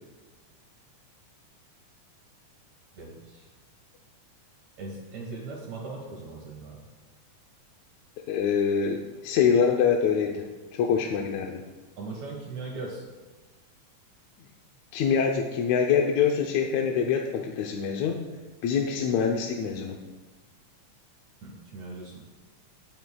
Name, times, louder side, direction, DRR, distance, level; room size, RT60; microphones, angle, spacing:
voice 1, 3.0-3.5 4.8-6.8 10.9-11.0 12.0-13.0 21.4-22.3, right 3 dB, 65° right, -1 dB, 2.6 m, -39 dB
voice 2, 8.3-10.5 10.7-11.6 14.9-18.2 18.6-20.0, left 7 dB, 75° left, 2 dB, 1.9 m, -25 dB
19.5 x 9.5 x 2.3 m, 1.3 s
omnidirectional pair, 3.6 m